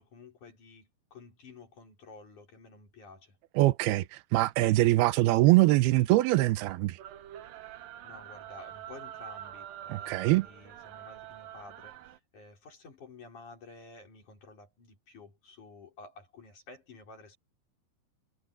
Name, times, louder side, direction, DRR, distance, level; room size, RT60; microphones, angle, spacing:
voice 1, 0.0-3.4 7.6-17.4, left 3 dB, 50° left, 6.3 m, -52 dB
voice 2, 3.6-7.0 9.9-10.5, right 18 dB, 85° right, 2.7 m, -23 dB
sound 1, 7.0-12.2, right 11 dB, 70° right, 2.8 m, -45 dB
omnidirectional pair, 4.4 m